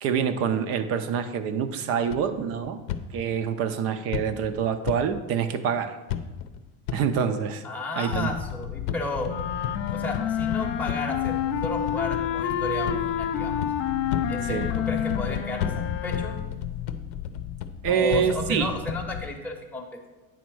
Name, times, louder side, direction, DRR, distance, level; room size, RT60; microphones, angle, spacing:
voice 1, 0.0-2.8 3.1-6.0 6.9-7.7 8.0-8.3 14.4-14.7 17.8-18.7, right 7 dB, 35° right, 11 dB, 0.5 m, -26 dB
sound 1, 2.1-3.0 4.1-5.0 6.1-6.6 6.9-7.0 8.1-19.3, left 9 dB, 65° left, 0.7 m, -33 dB
voice 2, 7.6-9.3 9.9-11.4 11.6-13.6 14.3-15.7 16.0-16.3 17.9-20.0, left 2 dB, 5° left, -1 dB, 0.8 m, -33 dB
sound 2, 9.2-16.6, left 9 dB, 30° left, 0.4 m, -29 dB
9.2 x 4.2 x 6.1 m, 1.1 s
cardioid pair, 160°, 41 cm